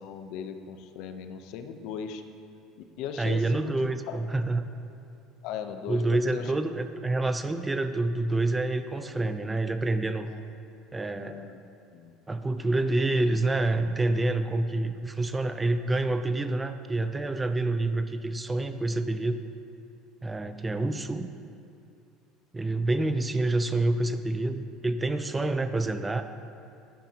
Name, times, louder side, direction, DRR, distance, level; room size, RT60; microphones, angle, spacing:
voice 1, 0.0-2.2 2.8-3.7 4.1-4.2 5.4-6.5 10.3-10.4 11.1-11.6 11.9-12.1, left 7 dB, 70° left, 7 dB, 0.8 m, -38 dB
voice 2, 3.2-4.7 5.9-10.3 10.9-11.5 12.3-19.4 20.2-21.3 22.5-26.2, right 2 dB, 15° right, 9 dB, 0.6 m, -27 dB
15.0 x 10.5 x 3.0 m, 2.5 s
supercardioid pair, 100°, 0 cm